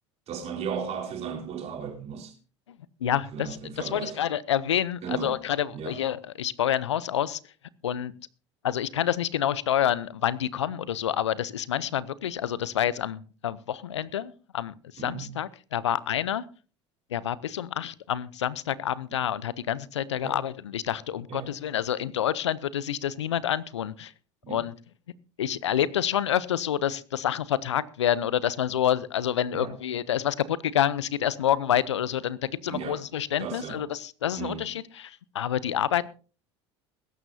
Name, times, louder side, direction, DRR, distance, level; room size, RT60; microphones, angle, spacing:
voice 1, 0.3-2.3 3.3-4.1 5.0-5.4 5.7-6.0 15.0-15.3 20.2-20.4 21.3-21.5 24.4-24.6 29.5-29.7 32.7-33.0 33.4-33.8 34.4-34.6, right 7 dB, 45° right, 4.3 m, -35 dB
voice 2, 3.0-7.4 7.8-8.1 8.6-16.4 17.1-24.1 24.5-24.8 25.4-36.1, left 10 dB, 85° left, 0.6 m, -28 dB
21.5 x 11.5 x 2.7 m
hypercardioid pair, 75°, 14 cm